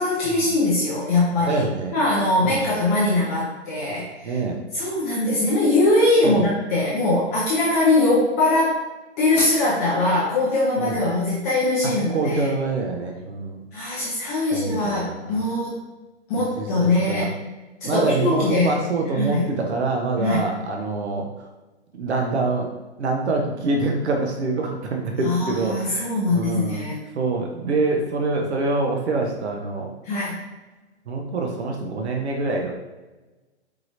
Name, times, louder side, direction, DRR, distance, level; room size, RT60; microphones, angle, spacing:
voice 1, 0.0-1.6 1.9-4.4 4.7-8.8 9.2-12.5 13.7-15.8 16.3-17.3 17.8-18.8 19.1-19.5 20.2-20.4 25.2-27.0 30.0-30.4, left 2 dB, 15° left, -6 dB, 0.4 m, -21 dB
voice 2, 1.5-1.9 4.2-4.6 6.2-6.5 10.8-11.0 12.1-13.6 14.5-15.4 16.6-17.3 17.9-21.3 22.0-22.7 23.0-26.8 27.1-29.9 31.1-32.7, right 3 dB, 70° right, 1 dB, 0.8 m, -25 dB
4.8 x 2.9 x 2.6 m, 1.2 s
hypercardioid pair, 130°, 34 cm